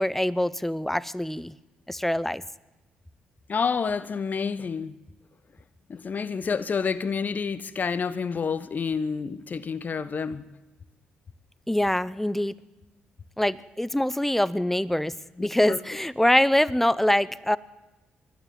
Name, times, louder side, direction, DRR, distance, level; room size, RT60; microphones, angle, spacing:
voice 1, 0.0-1.5 1.9-2.4 11.7-12.5 13.4-17.6, left 1 dB, 5° left, 0.9 m, -24 dB
voice 2, 3.5-4.9 5.9-10.5 15.4-15.8, left 5 dB, 45° left, 1.1 m, -29 dB
22.5 x 12.0 x 9.6 m
supercardioid pair, 55°, 4 cm